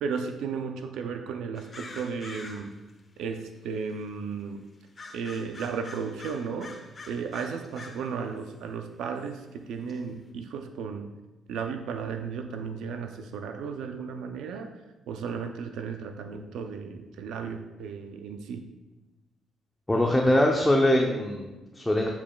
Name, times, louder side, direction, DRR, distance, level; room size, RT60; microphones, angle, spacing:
voice 1, 0.0-2.7 3.2-4.6 5.1-6.8 7.1-11.1 11.5-14.7 15.1-18.7, right 6 dB, 85° right, 6 dB, 0.5 m, -34 dB
sound 1, 1.5-2.9 3.5-3.6 4.9-8.1 8.4-8.5 9.3-9.4 9.9-10.0, left 3 dB, 35° left, 1.0 m, -45 dB
voice 2, 19.9-22.1, left 1 dB, 10° left, 0 dB, 0.8 m, -23 dB
7.4 x 7.0 x 2.3 m, 1.1 s
cardioid pair, 90°, 0 cm